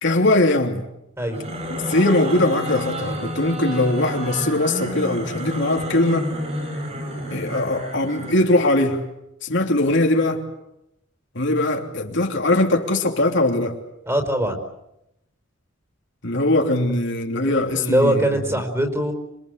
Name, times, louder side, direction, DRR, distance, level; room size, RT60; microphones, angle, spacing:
voice 1, 0.0-0.8 1.7-6.3 7.3-9.0 9.4-10.4 11.3-13.8 16.2-18.4, left 1 dB, 65° left, 3.2 m, -21 dB
sound 1, 1.2-8.5, equal, 35° right, 7.5 m, -30 dB
voice 2, 14.1-14.6 17.5-19.1, right 1 dB, 15° right, 4.8 m, -22 dB
27.5 x 24.5 x 8.2 m
head